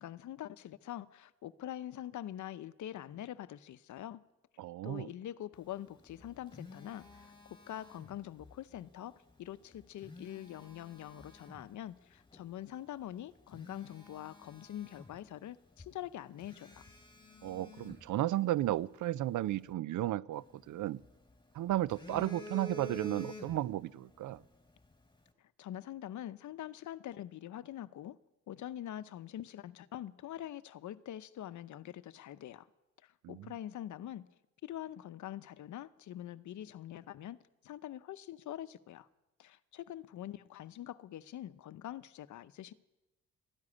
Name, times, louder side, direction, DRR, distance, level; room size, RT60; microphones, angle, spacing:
voice 1, 0.0-4.2 4.8-16.8 25.4-28.2 28.5-32.7 33.0-34.3 34.6-39.1 39.4-42.7, left 12 dB, 60° left, 0.7 m, -44 dB
voice 2, 4.6-5.1 17.4-21.0 21.5-24.4 33.2-33.5, right 14 dB, 65° right, 0.6 m, -34 dB
Telephone, 6.0-8.5 9.8-11.7 12.3-12.5 13.0-13.1 13.5-15.5 15.8-15.9 16.4-18.8 20.3-21.3 21.7-23.9 24.1-24.4, left 1 dB, 15° left, 3.3 m, -50 dB
13.5 x 10.5 x 9.8 m
supercardioid pair, 70°, 33 cm